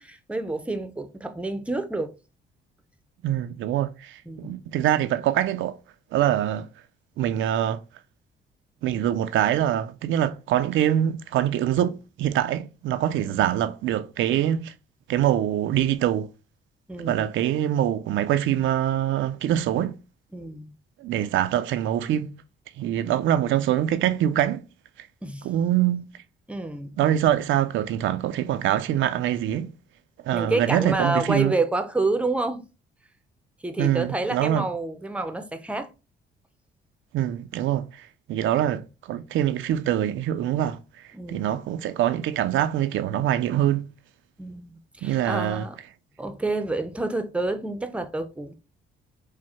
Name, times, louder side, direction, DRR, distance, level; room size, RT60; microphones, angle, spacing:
voice 1, 0.0-2.1 4.3-4.5 13.3-13.5 16.9-17.2 20.3-20.7 25.2-25.5 26.5-27.0 30.3-32.6 33.6-35.9 41.1-41.6 44.4-45.8 46.2-48.5, right 2 dB, 5° right, 0.6 m, -28 dB
voice 2, 3.2-5.8 6.1-6.7 7.2-7.8 8.8-14.7 15.1-16.3 17.0-20.0 21.0-22.3 22.8-24.6 25.0-25.1 25.4-26.0 27.0-29.7 30.2-31.5 33.8-34.7 37.1-40.8 41.3-43.9 45.0-45.7, right 11 dB, 75° right, 0.4 m, -24 dB
4.6 x 2.1 x 4.3 m
cardioid pair, 90°, 20 cm